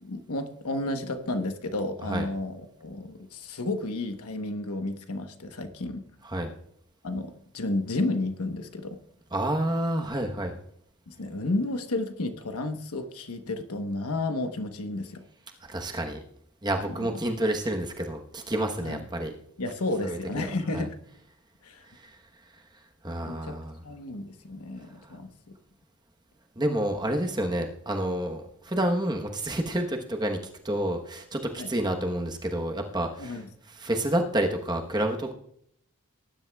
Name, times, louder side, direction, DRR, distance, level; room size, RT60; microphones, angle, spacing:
voice 1, 0.0-6.1 7.0-9.0 11.1-15.2 17.0-17.1 18.8-19.0 19.6-20.9 21.6-21.8 23.2-23.5 23.8-25.6 31.6-31.7 33.2-33.5, left 2 dB, 85° left, 7 dB, 1.1 m, -32 dB
voice 2, 9.3-10.5 15.7-16.2 16.6-19.3 20.0-20.5 20.7-20.9 23.0-23.8 26.6-30.4 30.6-33.4 33.7-35.3, right 1 dB, 20° right, 3 dB, 1.0 m, -29 dB
19.0 x 10.5 x 2.3 m, 0.68 s
head